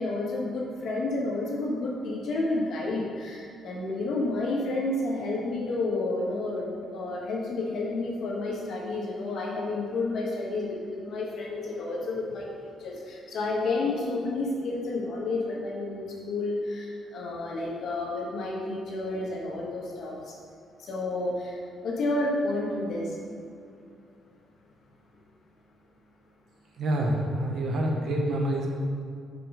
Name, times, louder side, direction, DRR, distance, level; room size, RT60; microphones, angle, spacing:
voice 1, 0.0-20.4 20.8-23.1, left 2 dB, 65° left, -2 dB, 1.5 m, -30 dB
voice 2, 26.8-28.7, right 1 dB, 60° right, 0 dB, 1.1 m, -27 dB
5.8 x 5.4 x 5.0 m, 2.4 s
cardioid pair, 120°, 0 cm